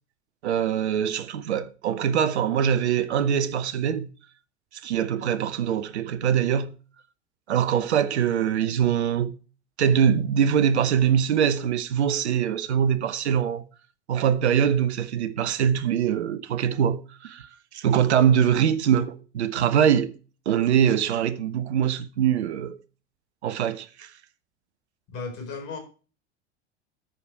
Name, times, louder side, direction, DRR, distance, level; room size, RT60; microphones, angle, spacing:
voice 1, 0.4-4.1 4.8-6.7 7.5-9.3 9.8-13.6 14.1-20.1 20.5-22.8 23.4-24.1, right 8 dB, 70° right, 0.8 m, -23 dB
voice 2, 25.1-25.8, left 4 dB, 40° left, 4.3 m, -34 dB
14.0 x 4.9 x 4.5 m
figure-of-eight pair, 80°, 35 cm